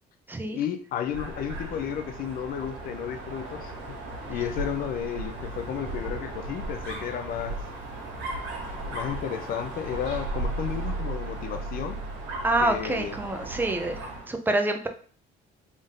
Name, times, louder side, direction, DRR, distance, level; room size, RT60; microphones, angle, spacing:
voice 1, 0.5-4.0 4.3-7.6 8.9-12.0 12.6-13.2, left 8 dB, 60° left, 7 dB, 0.5 m, -33 dB
Dog, 1.0-14.3, right 2 dB, 85° right, 1.4 m, -35 dB
voice 2, 12.4-14.0 14.3-14.9, right 2 dB, 10° right, 6 dB, 0.6 m, -26 dB
3.6 x 2.6 x 3.7 m, 0.43 s
cardioid pair, 110°, 17 cm